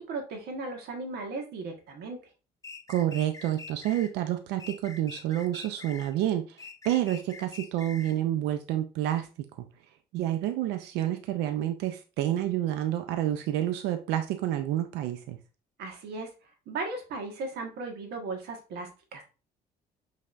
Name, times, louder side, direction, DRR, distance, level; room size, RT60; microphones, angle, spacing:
voice 1, 0.0-2.2 15.8-16.3 16.7-19.2, right 3 dB, 75° right, 3 dB, 1.4 m, -36 dB
sound 1, 2.6-4.1 4.6-6.1 6.6-8.2, left 4 dB, 20° left, 0.6 m, -45 dB
voice 2, 2.9-9.3 9.6-9.7 10.1-15.4, right 12 dB, 90° right, 7 dB, 0.5 m, -29 dB
5.6 x 3.3 x 2.5 m, 0.33 s
cardioid pair, 110°, 17 cm